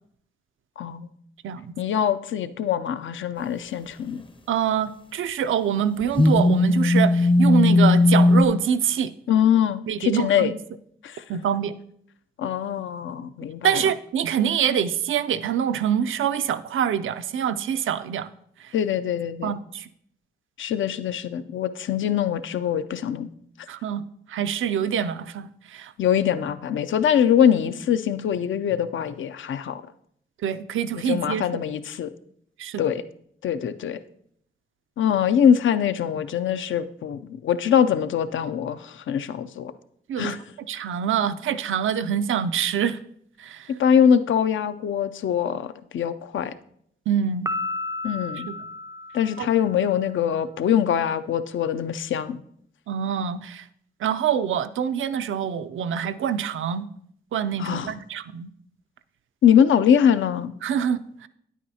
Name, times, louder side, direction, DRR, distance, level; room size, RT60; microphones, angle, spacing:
voice 1, 0.8-1.1 1.8-4.3 9.3-10.5 11.0-11.2 12.4-13.8 18.7-19.5 20.6-23.3 26.0-29.8 31.1-32.1 32.8-33.0 33.4-34.0 35.0-39.7 40.2-40.4 43.8-46.5 48.0-48.5 49.1-52.4 57.6-57.9 59.4-60.5, left 8 dB, 65° left, 12 dB, 0.5 m, -23 dB
voice 2, 4.5-9.1 9.9-10.5 11.3-11.8 13.6-18.3 18.6-18.7 19.4-19.9 23.7-24.0 24.3-25.9 30.4-31.5 32.6-32.9 40.1-40.4 40.7-43.0 43.4-43.7 47.1-47.5 48.5-48.6 49.4-49.5 52.9-53.7 54.0-56.9 57.3-58.5 60.6-61.3, right 8 dB, 70° right, 12 dB, 0.5 m, -25 dB
sound 1, 6.2-8.4, left 2 dB, 25° left, 0.6 m, -17 dB
Piano, 47.5-50.0, left 2 dB, 15° right, 0.4 m, -33 dB
9.5 x 8.4 x 2.8 m, 0.69 s
supercardioid pair, 45°, 21 cm